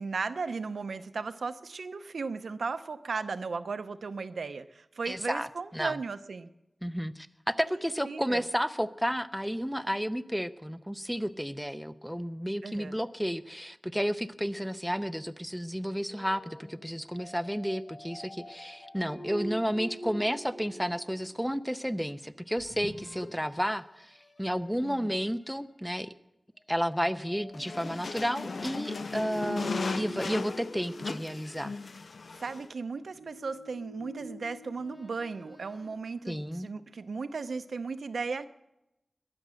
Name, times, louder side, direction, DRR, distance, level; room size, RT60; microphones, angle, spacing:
voice 1, 0.0-6.5 8.0-8.4 12.6-13.0 24.8-25.2 32.4-38.5, right 4 dB, 85° right, 10 dB, 0.7 m, -36 dB
voice 2, 5.1-6.0 6.8-26.1 26.7-31.7 36.3-36.7, equal, ahead, 11 dB, 0.6 m, -32 dB
sound 1, 16.1-21.4 22.5-23.8 24.2-24.4 25.0-25.5 27.1-31.5 32.8-35.9, equal, 50° left, 1.6 m, -45 dB
sound 2, 27.5-32.7, left 4 dB, 70° left, 0.4 m, -37 dB
21.5 x 7.8 x 6.4 m, 0.89 s
wide cardioid pair, 80°, 0 cm